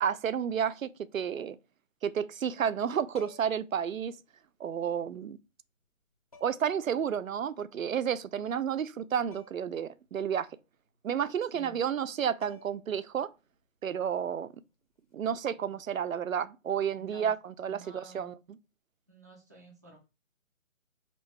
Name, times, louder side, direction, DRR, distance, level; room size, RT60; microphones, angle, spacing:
voice 1, 0.0-1.6 2.0-4.1 4.6-5.4 6.4-10.5 11.0-13.3 13.8-14.5 15.1-18.6, right 8 dB, 85° right, 0.5 m, -31 dB
sound 1, 3.1-3.7 5.0-5.1 6.3-6.8 9.3-9.7 10.1-10.2 12.0-12.1 12.4-13.0 15.0-15.2, left 4 dB, 30° left, 0.6 m, -52 dB
voice 2, 17.0-17.3 17.7-18.3 19.1-20.0, right 2 dB, 15° right, 0.5 m, -52 dB
4.3 x 2.9 x 3.2 m
figure-of-eight pair, 150°, 40 cm